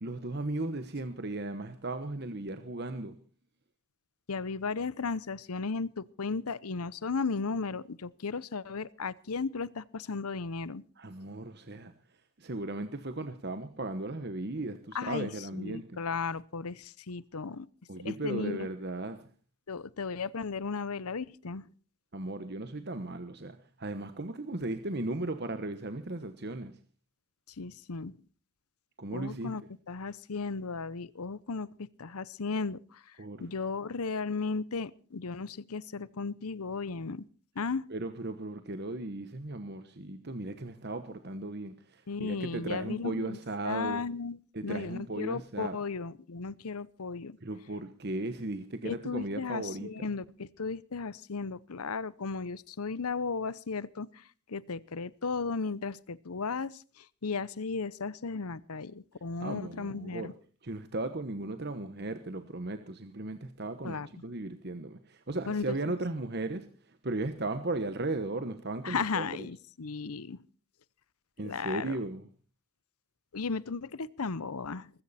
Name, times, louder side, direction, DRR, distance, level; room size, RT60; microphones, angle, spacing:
voice 1, 0.0-3.1 11.0-11.9 12.4-16.0 17.9-19.2 22.1-26.8 29.0-29.5 33.2-33.5 37.9-44.1 44.5-45.8 47.4-50.1 59.4-60.3 60.6-69.3 71.4-72.3, right 2 dB, 45° right, 1.1 m, -36 dB
voice 2, 4.3-10.8 14.9-17.7 18.0-18.7 19.7-21.6 27.6-28.1 29.1-37.2 37.6-37.8 42.1-43.4 43.6-44.4 44.6-47.4 48.8-60.3 63.8-64.1 65.5-66.0 68.8-70.4 71.4-72.0 73.3-74.9, left 4 dB, 80° left, 0.8 m, -35 dB
20.0 x 15.5 x 4.2 m
head